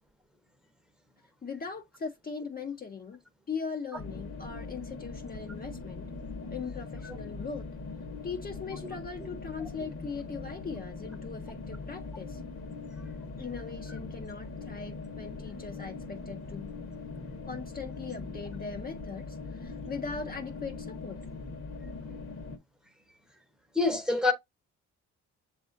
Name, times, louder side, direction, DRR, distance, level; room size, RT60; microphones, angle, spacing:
voice 1, 1.4-3.2 3.5-6.1 6.5-7.7 8.2-12.4 13.4-16.7 17.5-21.2, left 5 dB, 30° left, 0.6 m, -40 dB
sound 1, 3.9-22.6, left 3 dB, 45° left, 1.1 m, -41 dB
voice 2, 23.7-24.3, left 3 dB, ahead, 0.8 m, -25 dB
7.0 x 2.5 x 2.5 m
cardioid pair, 90°, 30 cm